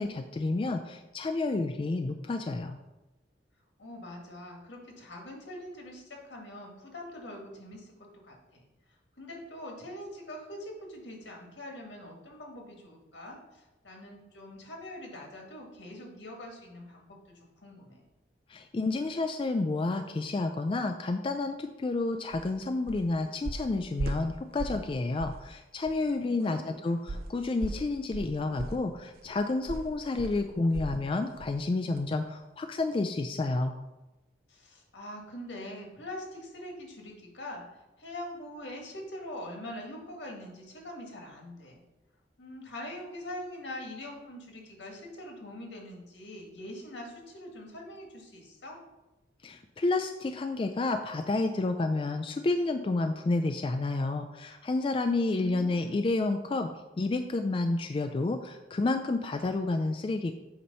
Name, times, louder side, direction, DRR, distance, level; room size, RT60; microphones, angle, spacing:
voice 1, 0.0-2.8 18.5-33.8 49.4-56.7 57.0-60.3, left 2 dB, 30° left, 6 dB, 0.3 m, -30 dB
voice 2, 3.8-7.9 8.2-8.6 9.2-18.0 26.2-26.6 26.8-27.0 34.5-41.8 42.4-48.8 55.3-56.1, left 1 dB, 80° left, 0 dB, 1.6 m, -43 dB
sound 1, 22.3-22.5 22.9-23.1 23.5-24.9 25.2-25.5 25.8-26.0 27.1-31.1 31.4-31.6 32.0-32.1, right 2 dB, 55° right, 0.5 m, -38 dB
8.3 x 3.0 x 5.4 m, 1.0 s
head